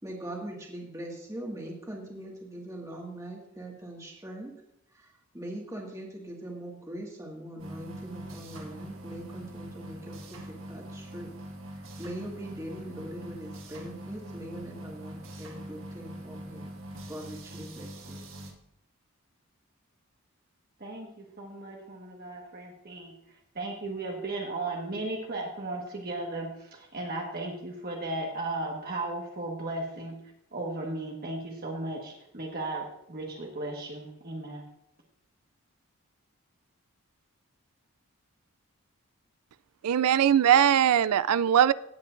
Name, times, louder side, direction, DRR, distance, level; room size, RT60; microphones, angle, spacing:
voice 1, 0.0-4.5 4.9-11.3 11.7-16.7 17.1-18.3, right 1 dB, 15° right, -1 dB, 1.9 m, -41 dB
sound 1, 7.6-18.5, right 1 dB, 60° right, 1.7 m, -43 dB
voice 2, 20.8-23.1 23.5-30.2 30.5-34.6, right 2 dB, 45° right, -1 dB, 1.5 m, -36 dB
voice 3, 39.8-41.7, right 9 dB, 85° right, 18 dB, 0.4 m, -21 dB
17.0 x 8.4 x 2.6 m, 0.81 s
head